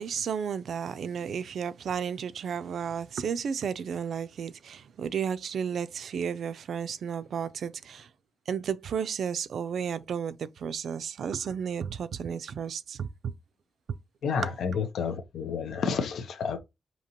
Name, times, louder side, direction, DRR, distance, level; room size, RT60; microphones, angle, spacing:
voice 1, 0.0-8.1 8.5-13.3 14.4-14.5, right 7 dB, 70° right, 0.3 m, -33 dB
voice 2, 14.2-16.6, left 6 dB, 85° left, 0.6 m, -30 dB
5.1 x 2.8 x 2.8 m
wide cardioid pair, 145°, 0 cm